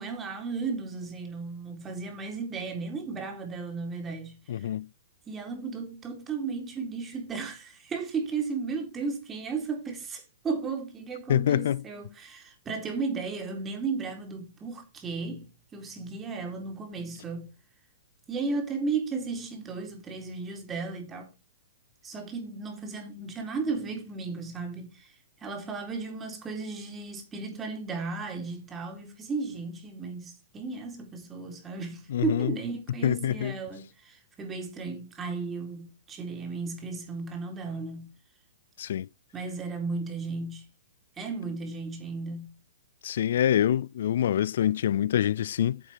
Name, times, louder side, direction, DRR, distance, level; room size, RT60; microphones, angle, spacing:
voice 1, 0.0-4.7 5.3-17.5 18.3-21.3 22.0-38.1 39.3-40.7 41.2-42.6, right 4 dB, 20° right, 3.9 m, -35 dB
voice 2, 4.5-4.9 11.3-11.8 32.1-32.5 33.0-33.6 38.8-39.1 43.0-45.8, left 10 dB, 65° left, 0.4 m, -25 dB
10.0 x 7.1 x 4.4 m
hypercardioid pair, 125°, 0 cm